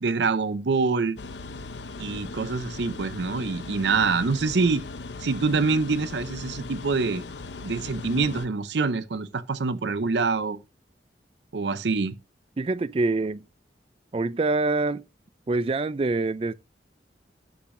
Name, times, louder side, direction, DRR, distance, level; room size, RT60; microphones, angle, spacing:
voice 1, 0.0-1.2 2.0-4.8 5.2-7.2 7.6-10.6 11.5-12.2, right 4 dB, 75° right, 0.6 m, -25 dB
sound 1, 1.2-8.5, left 3 dB, 80° left, 0.7 m, -38 dB
voice 2, 12.6-13.4 14.1-15.0 15.5-16.5, right 3 dB, 30° right, 0.3 m, -25 dB
12.0 x 7.0 x 2.6 m
head